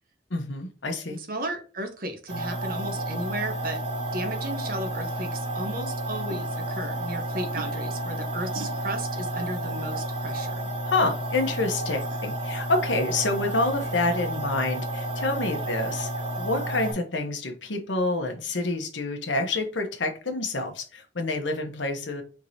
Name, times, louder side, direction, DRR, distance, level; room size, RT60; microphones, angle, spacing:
voice 1, 0.3-1.2 10.9-16.1 16.4-22.2, left 2 dB, 85° left, 5 dB, 1.1 m, -28 dB
voice 2, 1.2-3.8 4.1-10.7, right 1 dB, 55° right, 5 dB, 1.1 m, -34 dB
sound 1, 2.3-16.9, right 1 dB, 75° right, 1.8 m, -31 dB
4.7 x 3.7 x 2.8 m, 0.38 s
head